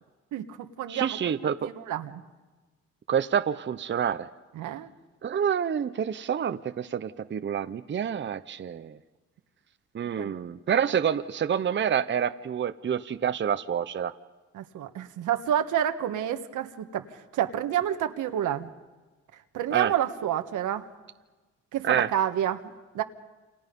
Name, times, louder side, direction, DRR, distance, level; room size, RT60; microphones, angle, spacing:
voice 1, 0.3-1.2 1.6-2.2 4.5-4.9 10.2-10.3 14.5-18.7 19.5-20.9 21.7-23.0, right 10 dB, 80° right, 7 dB, 1.5 m, -29 dB
voice 2, 0.9-1.7 3.1-4.3 5.2-9.0 9.9-14.1 19.7-19.9 21.8-22.1, right 8 dB, 40° right, 10 dB, 0.8 m, -27 dB
29.0 x 28.0 x 5.4 m, 1.2 s
cardioid pair, 90°, 30 cm